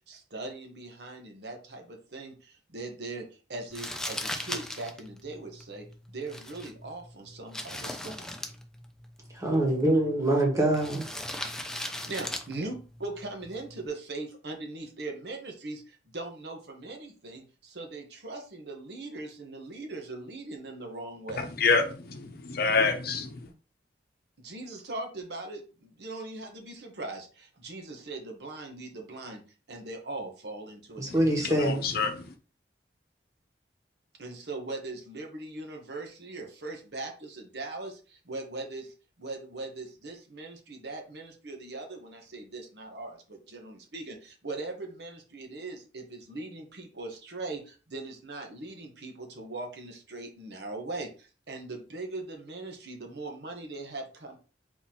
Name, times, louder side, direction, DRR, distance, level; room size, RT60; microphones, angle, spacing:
voice 1, 0.1-8.3 11.8-21.5 24.4-29.4 29.7-31.5 34.2-54.4, right 2 dB, 65° right, 1.1 m, -40 dB
Crumpling crinkling, 3.7-13.9, left 1 dB, 5° left, 0.5 m, -40 dB
voice 2, 9.3-11.0 31.0-31.8, right 1 dB, 20° right, 1.4 m, -24 dB
voice 3, 21.4-23.4 31.4-32.2, left 4 dB, 60° left, 0.8 m, -27 dB
4.1 x 2.9 x 4.2 m
head